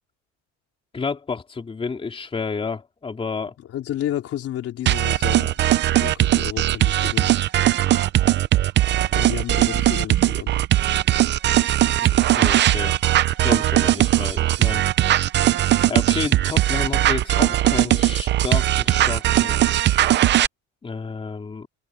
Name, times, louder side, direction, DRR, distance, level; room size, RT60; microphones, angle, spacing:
voice 1, 0.9-3.6 12.1-13.0 13.3-14.8 15.9-19.7 20.8-21.7, left 4 dB, 15° left, 3.5 m, -30 dB
voice 2, 3.7-5.6 6.0-7.6 9.1-10.5, left 12 dB, 45° left, 4.2 m, -31 dB
sound 1, 4.9-20.5, right 13 dB, 35° right, 0.6 m, -19 dB
open air
cardioid pair, 150°, 32 cm